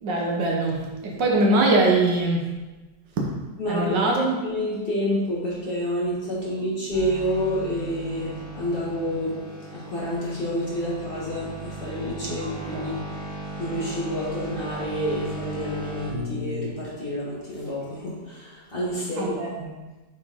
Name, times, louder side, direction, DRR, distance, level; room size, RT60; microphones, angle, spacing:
voice 1, 0.0-2.5 3.2-3.3 3.7-4.4 12.4-12.9 19.2-19.7, right 2 dB, 85° right, 0 dB, 1.8 m, -23 dB
voice 2, 3.6-4.0 4.4-9.4 9.7-12.9 13.6-19.3, equal, 30° left, -8 dB, 2.1 m, -29 dB
sound 1, 6.9-16.7, right 1 dB, 50° left, 2.5 m, -36 dB
7.3 x 4.5 x 3.6 m, 1.2 s
omnidirectional pair, 1.9 m